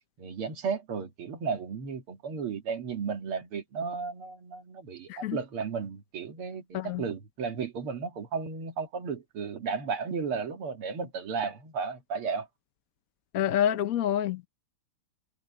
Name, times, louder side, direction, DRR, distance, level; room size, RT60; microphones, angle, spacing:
voice 1, 0.2-12.5, right 5 dB, 80° right, 2.8 m, -34 dB
voice 2, 13.3-14.5, left 10 dB, 60° left, 0.9 m, -27 dB
omnidirectional pair, 2.4 m